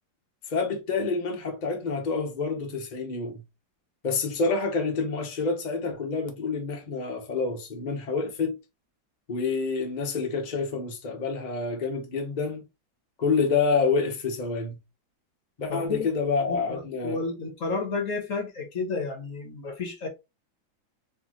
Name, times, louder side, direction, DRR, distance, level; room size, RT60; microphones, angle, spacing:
voice 1, 0.5-3.4 4.0-8.6 9.3-12.6 13.2-14.8 15.6-17.2, left 4 dB, 30° left, 0.8 m, -28 dB
voice 2, 15.7-16.1 16.5-20.1, left 4 dB, 50° left, 1.2 m, -31 dB
4.5 x 3.2 x 3.0 m
omnidirectional pair, 2.1 m